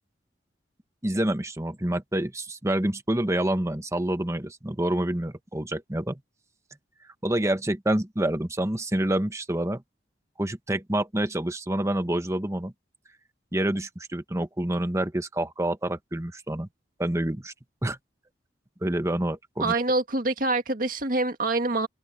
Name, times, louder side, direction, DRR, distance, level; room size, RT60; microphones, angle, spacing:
voice 1, 1.0-6.2 7.2-9.8 10.4-12.7 13.5-16.7 17.0-17.5 17.8-18.0 18.8-19.7, right 1 dB, 15° right, 1.2 m, -27 dB
voice 2, 19.6-21.9, right 2 dB, 50° right, 1.9 m, -25 dB
head